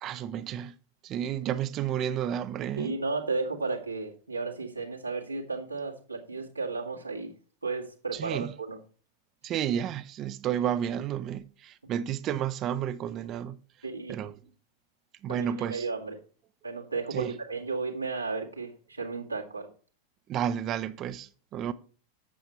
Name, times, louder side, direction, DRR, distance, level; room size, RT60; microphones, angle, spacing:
voice 1, 0.0-0.7 1.0-3.0 8.1-8.5 9.4-13.6 14.1-14.3 15.2-15.9 17.1-17.4 20.3-21.7, right 9 dB, 35° right, 0.5 m, -31 dB
voice 2, 2.8-7.3 7.6-8.8 13.8-14.2 15.3-16.2 16.6-19.7, right 4 dB, 85° right, 1.9 m, -34 dB
8.3 x 7.1 x 4.4 m
figure-of-eight pair, 90°, 0 cm